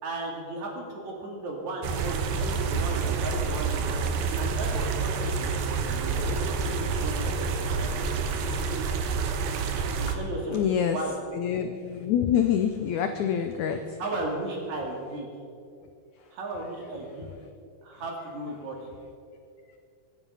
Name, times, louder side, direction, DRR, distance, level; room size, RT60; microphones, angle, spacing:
voice 1, 0.0-8.0 10.0-10.6 10.9-11.1 14.0-15.3 16.3-17.3 17.8-18.7, right 2 dB, 55° right, 0 dB, 3.5 m, -35 dB
sound 1, 1.8-10.2, right 5 dB, 75° right, 2.8 m, -28 dB
voice 2, 10.5-11.0 11.3-14.0, left 9 dB, 85° left, 7 dB, 1.6 m, -26 dB
24.0 x 9.3 x 5.6 m, 2.5 s
omnidirectional pair, 4.2 m